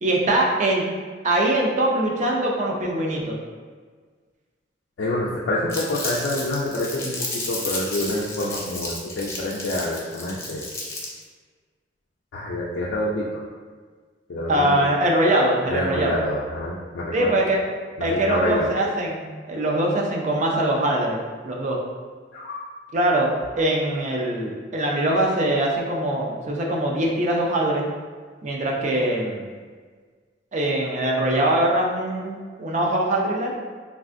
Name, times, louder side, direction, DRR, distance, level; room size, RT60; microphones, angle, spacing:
voice 1, 0.0-0.8 1.2-3.4 14.5-16.2 17.1-17.6 18.0-21.2 21.4-21.8 22.9-27.8 28.4-29.5 30.5-33.6, right 1 dB, 40° right, -1 dB, 0.5 m, -22 dB
voice 2, 5.0-10.6 12.3-13.4 14.3-15.0 15.7-17.4 18.0-18.7 22.3-22.6, left 1 dB, 80° left, -5 dB, 0.4 m, -27 dB
Crumpling crinkling, 5.7-11.2, left 2 dB, 15° left, 0.5 m, -32 dB
3.3 x 2.4 x 2.5 m, 1.5 s
head